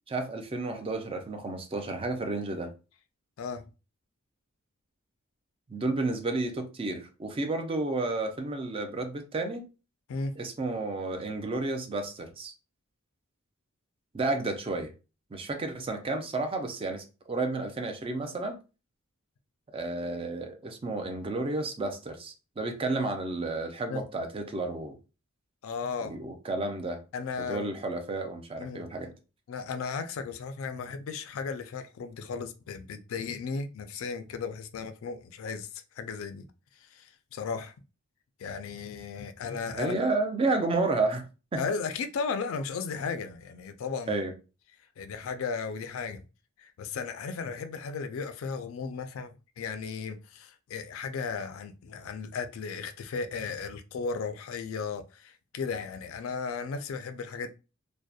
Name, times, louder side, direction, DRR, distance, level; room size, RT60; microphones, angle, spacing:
voice 1, 0.1-2.7 5.7-9.6 10.4-12.5 14.1-14.9 15.3-18.6 19.7-24.9 26.1-27.0 27.4-29.1 39.7-41.2 41.5-41.6 44.1-44.3, right 2 dB, 25° right, 0.4 m, -31 dB
voice 2, 25.6-26.2 27.1-27.7 28.6-28.9 29.5-35.7 36.0-36.5 36.9-37.7 38.4-40.0 41.6-44.2 45.0-46.2 46.6-49.3 49.6-57.5, left 5 dB, 65° left, 0.3 m, -35 dB
2.6 x 2.0 x 2.3 m
head